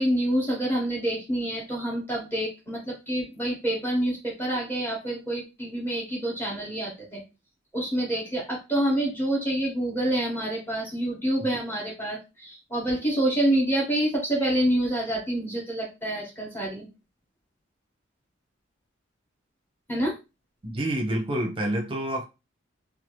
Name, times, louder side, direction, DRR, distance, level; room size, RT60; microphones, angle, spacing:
voice 1, 0.0-7.2 7.7-16.9 19.9-20.1, right 1 dB, 10° left, 1.1 m, -27 dB
voice 2, 20.6-22.2, right 1 dB, 25° right, 0.7 m, -28 dB
2.9 x 2.4 x 3.0 m
head